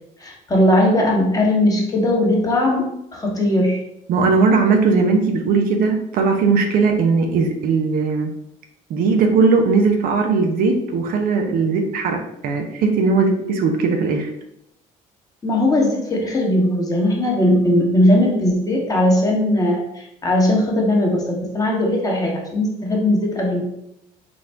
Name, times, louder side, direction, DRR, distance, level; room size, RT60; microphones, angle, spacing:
voice 1, 0.2-3.8 15.4-23.6, left 1 dB, 25° left, -1 dB, 1.4 m, -18 dB
voice 2, 4.1-8.3 8.9-14.3, right 4 dB, 70° right, 4 dB, 0.7 m, -18 dB
3.9 x 2.5 x 4.5 m, 0.80 s
supercardioid pair, 85°, 16 cm